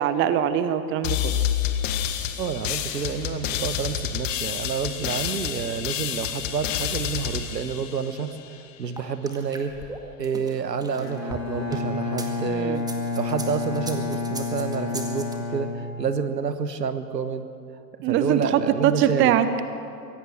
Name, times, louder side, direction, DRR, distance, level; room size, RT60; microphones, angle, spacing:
voice 1, 0.0-1.3 12.5-12.8 18.0-19.6, right 9 dB, 25° right, 12 dB, 0.9 m, -22 dB
sound 1, 1.0-8.5, left 9 dB, 50° left, 1.8 m, -29 dB
voice 2, 2.4-8.3 8.8-9.7 10.2-17.5 18.1-19.3, right 6 dB, 75° right, 11 dB, 1.4 m, -29 dB
sound 2, 9.0-12.3 12.8-15.3, right 2 dB, 10° right, 1.9 m, -37 dB
Bowed string instrument, 11.0-16.5, left 4 dB, 80° left, 3.2 m, -30 dB
23.5 x 17.5 x 6.4 m, 2.5 s
figure-of-eight pair, 95°, 50 cm